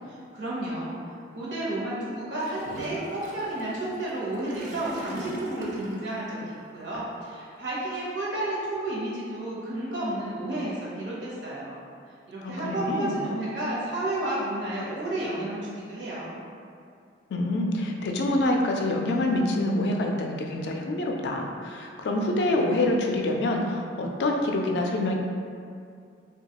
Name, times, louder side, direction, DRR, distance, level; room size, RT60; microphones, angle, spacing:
voice 1, 0.3-11.7 12.3-16.4, right 1 dB, 80° right, -6 dB, 0.8 m, -31 dB
Gurgling / Toilet flush, 2.4-6.2, right 1 dB, 45° right, 0.4 m, -40 dB
voice 2, 12.4-13.1 17.3-25.2, left 1 dB, 65° left, 2 dB, 0.3 m, -26 dB
2.9 x 2.3 x 2.8 m, 2.3 s
head